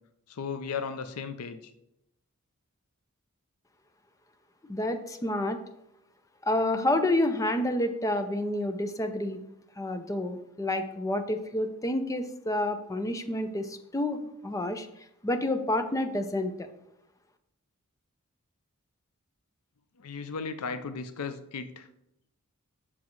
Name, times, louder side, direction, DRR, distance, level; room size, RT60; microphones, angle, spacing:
voice 1, 0.3-1.7 20.0-21.9, left 5 dB, 90° left, 10 dB, 0.5 m, -36 dB
voice 2, 4.7-5.6 6.4-9.4 9.8-14.2 14.4-14.9 15.2-16.5, left 1 dB, 15° left, 7 dB, 0.5 m, -29 dB
7.3 x 6.0 x 3.1 m, 0.84 s
head